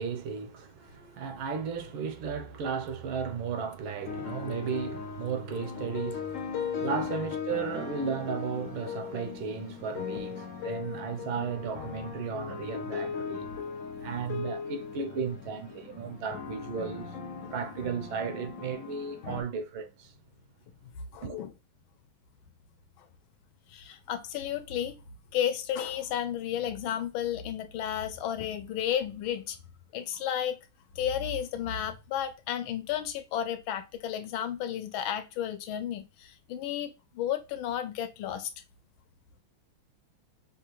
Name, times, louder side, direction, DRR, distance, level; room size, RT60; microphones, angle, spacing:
voice 1, 0.0-13.5 14.0-17.1 17.5-20.1 21.2-21.4, right 6 dB, 85° right, 1.5 m, -35 dB
sound 1, 4.1-19.4, left 7 dB, 65° left, 0.7 m, -38 dB
voice 2, 21.1-21.5 23.7-25.0 25.3-29.6 29.9-30.6 31.0-38.5, left 10 dB, 85° left, 1.4 m, -32 dB
5.5 x 2.4 x 3.0 m
omnidirectional pair, 2.2 m